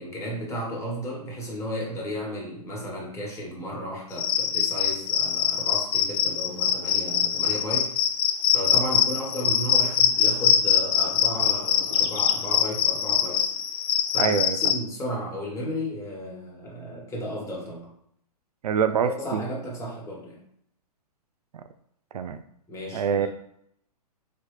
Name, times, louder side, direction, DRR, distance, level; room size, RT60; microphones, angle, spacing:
voice 1, 0.0-8.0 8.5-13.4 14.1-17.9 19.0-20.4 22.7-23.3, equal, 15° left, -3 dB, 1.3 m, -34 dB
Cricket, 4.1-14.7, left 9 dB, 35° left, 0.5 m, -23 dB
voice 2, 14.2-14.6 18.6-19.4 22.1-22.4 22.9-23.3, right 7 dB, 70° right, 10 dB, 0.4 m, -25 dB
4.2 x 3.1 x 3.2 m, 0.72 s
hypercardioid pair, 125°, 20 cm